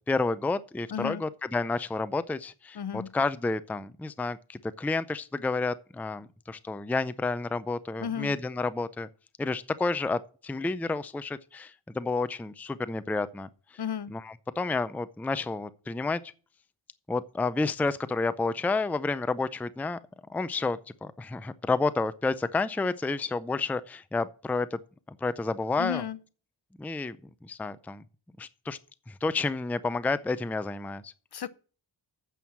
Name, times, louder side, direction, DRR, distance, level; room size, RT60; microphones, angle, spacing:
voice 1, 0.1-9.1 9.4-13.5 14.1-16.2 17.1-20.0 20.3-24.8 25.1-26.0 26.8-27.2 27.4-28.0 28.4-28.8 29.1-31.1, left 3 dB, 5° left, 0.4 m, -30 dB
voice 2, 0.9-1.2 2.7-3.1 8.0-8.4 13.8-14.1 25.8-26.2 31.3-31.5, left 8 dB, 55° left, 0.7 m, -33 dB
9.1 x 6.3 x 7.2 m
wide cardioid pair, 100°, 47 cm